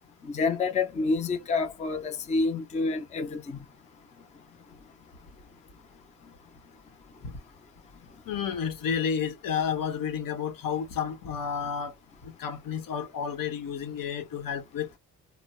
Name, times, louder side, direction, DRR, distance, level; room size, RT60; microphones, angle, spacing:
voice 1, 0.2-3.6, left 3 dB, 20° left, 0.4 m, -28 dB
voice 2, 8.3-11.9 12.2-15.0, left 7 dB, 75° left, 1.0 m, -31 dB
4.2 x 2.1 x 2.2 m
wide cardioid pair, 175°, 34 cm